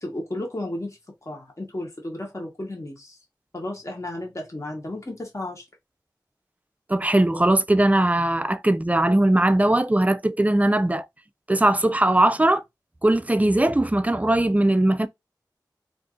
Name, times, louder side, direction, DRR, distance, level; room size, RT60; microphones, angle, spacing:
voice 1, 0.0-3.2 3.5-5.6, left 1 dB, 40° left, 1.1 m, -33 dB
voice 2, 6.9-11.1 11.5-12.6 13.0-15.1, right 1 dB, 20° right, 0.3 m, -20 dB
2.6 x 2.5 x 3.6 m
wide cardioid pair, 45°, 8 cm